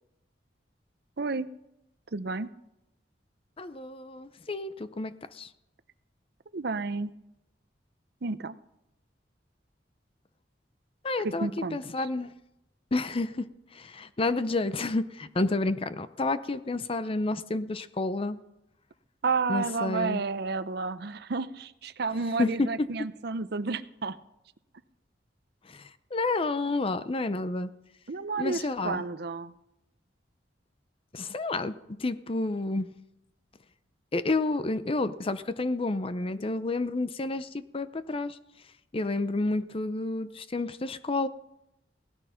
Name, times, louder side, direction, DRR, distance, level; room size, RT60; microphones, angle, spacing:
voice 1, 1.2-1.5 2.1-2.5 6.5-7.1 8.2-8.6 11.2-12.1 19.2-24.2 28.1-29.5, right 4 dB, 60° right, 13 dB, 0.7 m, -31 dB
voice 2, 3.6-5.5 11.0-12.3 12.9-13.5 13.7-18.4 19.5-20.2 22.4-22.9 25.7-27.7 28.4-29.0 31.1-32.9 34.1-38.4 38.9-41.3, left 2 dB, 30° left, 13 dB, 0.6 m, -30 dB
17.0 x 13.0 x 5.7 m, 0.87 s
head